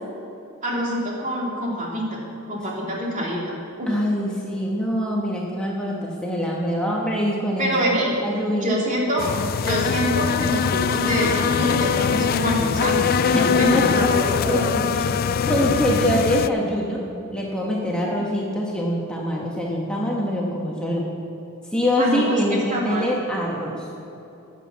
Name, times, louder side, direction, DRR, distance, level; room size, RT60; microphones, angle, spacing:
voice 1, 0.6-4.0 7.6-8.2 8.6-9.3 9.6-14.7 22.0-23.1, equal, 35° right, -3 dB, 2.4 m, -25 dB
voice 2, 3.9-7.7 8.2-8.8 13.3-14.1 14.5-15.1 15.5-17.0 17.3-21.1 21.7-23.9, equal, 5° left, -3 dB, 1.1 m, -24 dB
sound 1, 9.2-16.5, left 6 dB, 45° left, 0.3 m, -22 dB
10.5 x 7.5 x 7.3 m, 2.9 s
head